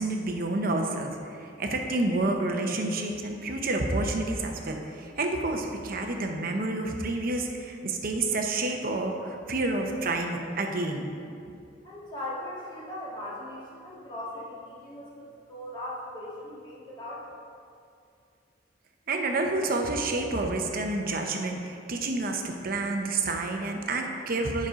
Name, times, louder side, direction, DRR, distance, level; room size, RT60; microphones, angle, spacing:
voice 1, 0.0-11.1 19.1-24.7, right 2 dB, 55° right, 3 dB, 0.8 m, -29 dB
voice 2, 11.8-17.3, left 1 dB, 25° left, -7 dB, 1.9 m, -39 dB
7.9 x 5.3 x 5.1 m, 2.5 s
head